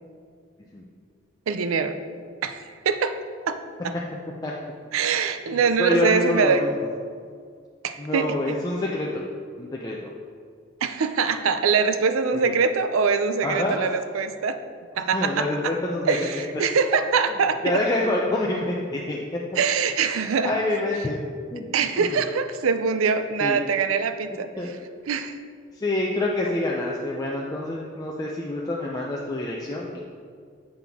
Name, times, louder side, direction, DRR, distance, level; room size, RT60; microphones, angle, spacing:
voice 1, 1.5-2.0 2.4-3.2 3.5-4.0 4.9-6.6 7.8-8.6 10.8-14.6 15.0-15.5 16.1-17.8 19.6-20.5 21.7-24.5 25.1-25.3, right 5 dB, 85° right, 10 dB, 0.4 m, -23 dB
voice 2, 5.5-6.7 8.0-9.3 9.6-10.1 12.4-12.5 13.4-13.9 15.1-16.2 17.6-19.2 20.4-21.2 21.5-21.7 22.0-22.1 23.4-23.6 24.6-24.7 25.7-30.0, left 2 dB, 20° left, -3 dB, 0.4 m, -26 dB
7.5 x 5.8 x 3.5 m, 2.1 s
head